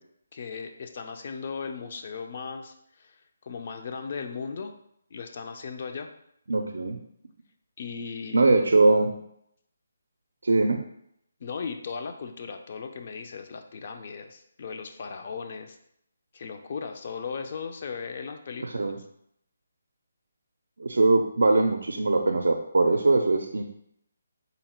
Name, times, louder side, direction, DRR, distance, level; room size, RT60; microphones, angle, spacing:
voice 1, 0.3-3.2 3.4-4.7 5.1-6.1 7.8-8.5 11.4-15.8 16.3-19.0, left 5 dB, 40° left, 6 dB, 0.4 m, -37 dB
voice 2, 6.5-7.0 8.3-9.1 10.4-10.8 18.6-19.0 20.8-23.6, right 3 dB, 85° right, 5 dB, 0.4 m, -21 dB
3.9 x 2.1 x 4.2 m, 0.74 s
hypercardioid pair, 165°, 0 cm